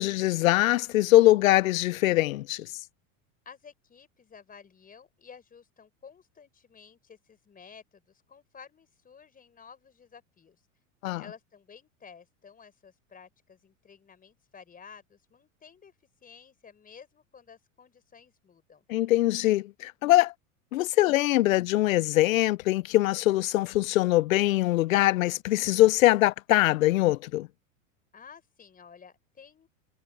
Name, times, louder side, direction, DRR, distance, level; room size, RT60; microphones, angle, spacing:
voice 1, 0.0-2.7 11.0-11.2 18.9-20.3 20.7-27.5, left 17 dB, 80° left, 0.7 m, -22 dB
voice 2, 3.5-10.6 11.2-15.9 16.2-18.9 28.1-29.7, left 6 dB, 20° left, 5.3 m, -52 dB
hypercardioid pair, 115°, 40 cm